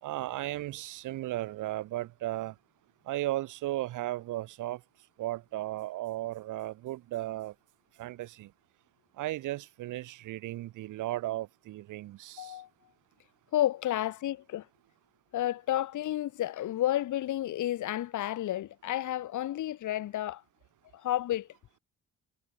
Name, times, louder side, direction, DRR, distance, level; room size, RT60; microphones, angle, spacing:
voice 1, 0.0-2.6 3.0-4.8 5.2-7.5 8.0-8.5 9.2-12.6, right 16 dB, 90° right, 3.8 m, -35 dB
voice 2, 12.4-12.7 13.5-14.7 15.3-20.4 20.9-21.5, left 13 dB, 75° left, 2.7 m, -31 dB
cardioid pair, 90°, 30 cm